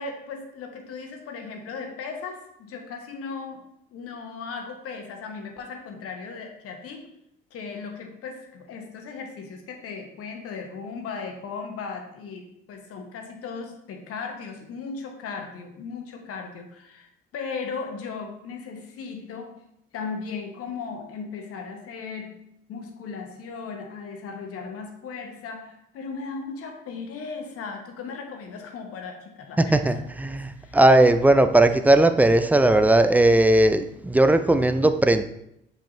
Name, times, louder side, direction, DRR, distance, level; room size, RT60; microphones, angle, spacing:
voice 1, 0.0-3.6 3.9-7.1 7.5-19.6 19.9-22.4 22.7-30.0 30.3-30.8, left 5 dB, 50° left, 4 dB, 1.0 m, -37 dB
voice 2, 29.6-35.2, right 1 dB, 5° right, 9 dB, 0.4 m, -18 dB
7.0 x 5.0 x 2.7 m, 0.78 s
figure-of-eight pair, 45°, 29 cm